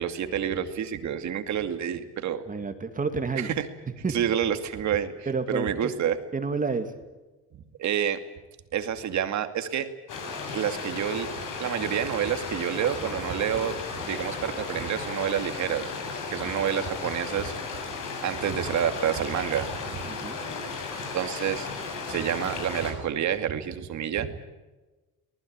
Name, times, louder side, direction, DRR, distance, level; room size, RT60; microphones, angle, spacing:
voice 1, 0.0-2.4 3.3-3.7 4.1-6.2 7.8-8.2 8.7-9.9 10.5-11.3 11.6-15.9 16.3-17.8 18.2-20.1 21.1-21.7 22.1-24.4, right 9 dB, 60° right, 8 dB, 2.4 m, -28 dB
voice 2, 2.5-3.5 4.0-4.2 5.3-5.9 6.3-6.9 16.6-16.7 20.1-20.4, right 4 dB, 25° right, 7 dB, 2.2 m, -29 dB
sound 1, 10.1-22.9, left 4 dB, 75° left, 7.4 m, -35 dB
25.5 x 19.5 x 8.9 m, 1.2 s
cardioid pair, 140°, 31 cm